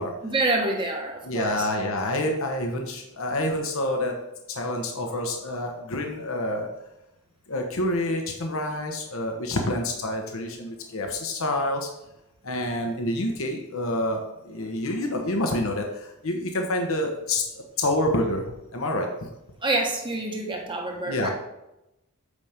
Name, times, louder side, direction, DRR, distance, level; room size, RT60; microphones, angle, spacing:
voice 1, 0.2-1.7 19.6-21.3, right 2 dB, 20° right, 0 dB, 1.3 m, -27 dB
voice 2, 1.2-4.1 4.5-6.7 7.5-11.9 12.4-18.4 18.7-19.1 21.1-21.3, left 1 dB, 65° left, 3 dB, 1.0 m, -27 dB
8.3 x 5.3 x 3.5 m, 0.89 s
head